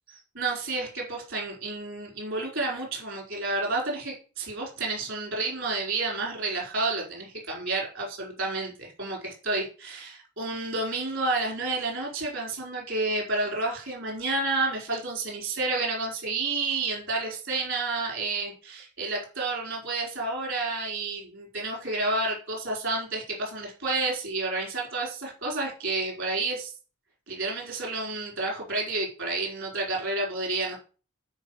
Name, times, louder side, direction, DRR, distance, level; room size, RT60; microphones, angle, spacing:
voice 1, 0.1-26.7 27.3-30.8, right 3 dB, 60° right, -1 dB, 4.8 m, -30 dB
9.4 x 4.9 x 6.4 m, 0.36 s
head